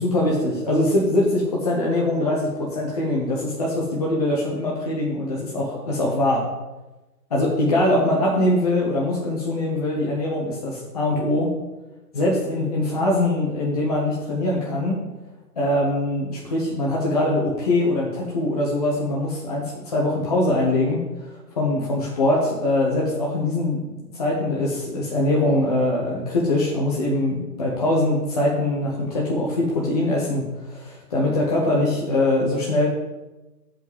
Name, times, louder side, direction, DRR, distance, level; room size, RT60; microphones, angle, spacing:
voice 1, 0.0-6.4 7.3-11.5 12.1-15.0 15.6-32.9, left 1 dB, 25° left, -3 dB, 1.1 m, -22 dB
7.7 x 5.1 x 7.5 m, 1.1 s
figure-of-eight pair, 150°, 48 cm